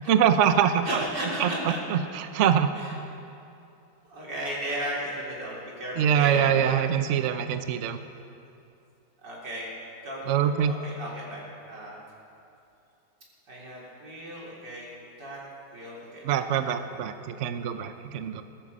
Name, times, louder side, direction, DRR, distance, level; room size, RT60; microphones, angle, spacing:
voice 1, 0.1-0.8 1.4-2.7 6.0-8.0 10.3-10.7 16.2-18.4, right 9 dB, 60° right, 9 dB, 0.8 m, -24 dB
voice 2, 0.8-1.8 2.8-3.0 4.0-7.4 9.2-9.7 10.0-11.4 11.7-12.0 13.5-14.9 15.2-15.4 15.7-16.8, equal, 85° right, -5 dB, 4.2 m, -35 dB
19.0 x 13.5 x 5.4 m, 2.7 s
omnidirectional pair, 1.8 m